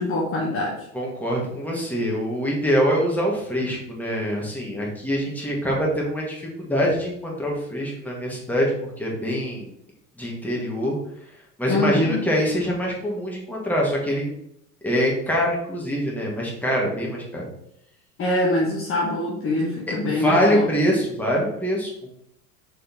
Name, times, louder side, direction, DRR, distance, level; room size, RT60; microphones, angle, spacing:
voice 1, 0.0-0.9 11.7-12.2 18.2-20.7, left 2 dB, 25° left, -3 dB, 1.3 m, -24 dB
voice 2, 0.9-9.7 10.2-11.0 11.6-14.3 14.8-17.5 19.9-21.9, equal, 5° left, -3 dB, 2.2 m, -24 dB
6.2 x 4.4 x 4.4 m, 0.75 s
figure-of-eight pair, 85°, 47 cm